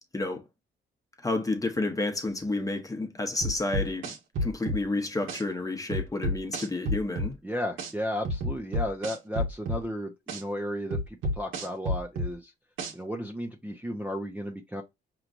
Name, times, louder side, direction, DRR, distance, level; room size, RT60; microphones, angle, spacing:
voice 1, 1.2-4.1 4.4-7.4, left 2 dB, 15° left, 1.0 m, -30 dB
sound 1, 3.4-4.8 5.3-5.4 5.9-7.3 7.8-7.9 8.2-9.8 10.3-10.4 10.9-12.3 12.8-12.9, equal, 80° right, 1.3 m, -30 dB
voice 2, 7.4-12.5 12.9-14.8, equal, 5° right, 0.7 m, -34 dB
4.9 x 3.1 x 2.5 m
cardioid pair, 90°, 20 cm